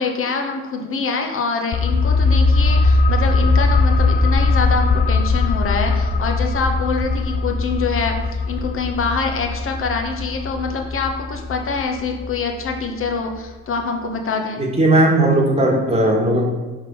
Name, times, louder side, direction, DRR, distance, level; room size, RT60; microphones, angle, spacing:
voice 1, 0.0-14.6, left 4 dB, 45° left, 3 dB, 0.9 m, -25 dB
sound 1, 1.7-13.1 13.4-13.5, left 3 dB, 30° left, 0.4 m, -19 dB
voice 2, 14.6-16.5, right 1 dB, 20° right, -1 dB, 1.4 m, -16 dB
5.3 x 3.6 x 5.4 m, 1.3 s
cardioid pair, 90°, 30 cm